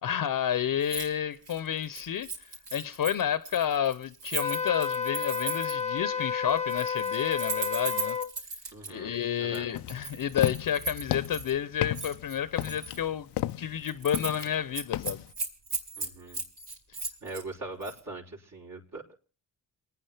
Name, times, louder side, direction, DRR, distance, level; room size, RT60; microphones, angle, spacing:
voice 1, 0.0-8.2 8.9-13.3 13.6-15.2, left 9 dB, 55° left, 0.9 m, -30 dB
Keys jangling, 0.8-1.1 1.4-5.9 6.6-8.9 9.5-11.5 11.9-13.0 13.4-13.5 13.8-14.5 14.7-17.4 17.8-18.0, right 4 dB, 70° right, 5.8 m, -37 dB
Wind instrument woodwind instrument, 4.4-8.3, left 6 dB, 15° left, 1.0 m, -31 dB
voice 2, 8.7-9.7 16.0-16.4 17.2-19.2, right 2 dB, 50° right, 4.9 m, -41 dB
sound 1, 9.7-15.3, left 15 dB, 75° left, 0.6 m, -34 dB
28.0 x 9.6 x 3.5 m
supercardioid pair, 55°, 41 cm